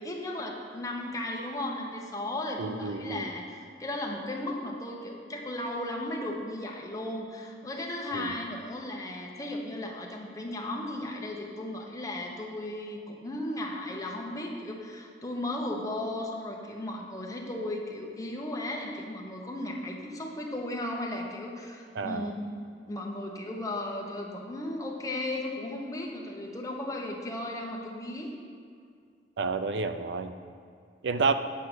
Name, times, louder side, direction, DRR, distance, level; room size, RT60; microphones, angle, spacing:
voice 1, 0.0-22.5 22.9-28.3, left 1 dB, 20° left, 0 dB, 1.0 m, -35 dB
voice 2, 2.6-3.3 8.1-8.3 22.0-22.3 29.4-30.3 31.0-31.3, right 4 dB, 85° right, 9 dB, 0.5 m, -30 dB
8.4 x 5.3 x 6.1 m, 2.3 s
head